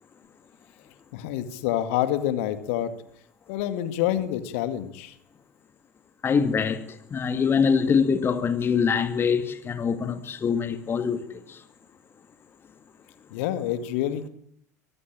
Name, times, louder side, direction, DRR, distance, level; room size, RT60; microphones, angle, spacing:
voice 1, 1.1-2.9 3.5-5.2 13.3-14.3, left 12 dB, 55° left, 2.1 m, -27 dB
voice 2, 6.2-11.6, left 6 dB, 25° left, 2.1 m, -24 dB
23.5 x 16.5 x 8.7 m
figure-of-eight pair, 75°, 9 cm